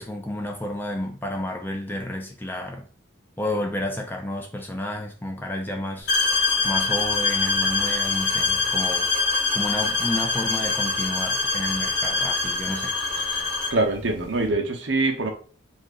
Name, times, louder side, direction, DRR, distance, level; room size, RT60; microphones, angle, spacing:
voice 1, 0.0-2.9 3.4-6.1 6.6-9.1 9.5-12.9, left 1 dB, 10° left, 0.4 m, -31 dB
sound 1, 6.1-13.8, left 3 dB, 55° left, 1.0 m, -24 dB
voice 2, 13.7-15.3, right 2 dB, 65° right, 0.7 m, -24 dB
2.8 x 2.5 x 3.6 m
head